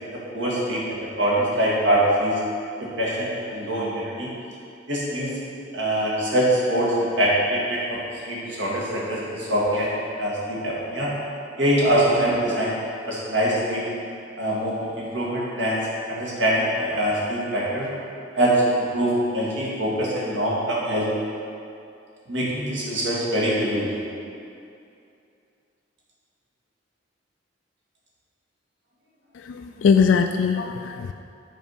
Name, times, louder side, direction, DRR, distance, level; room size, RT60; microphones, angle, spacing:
voice 1, 0.0-2.4 2.8-4.3 4.9-5.4 5.7-8.0 8.2-9.9 10.2-11.1 11.6-12.7 13.1-13.8 14.4-15.8 16.1-17.9 18.4-21.1 22.3-23.9, right 1 dB, 75° right, -6 dB, 1.9 m, -23 dB
voice 2, 29.3-31.1, left 6 dB, 75° left, 6 dB, 0.3 m, -21 dB
7.2 x 4.4 x 5.5 m, 2.5 s
head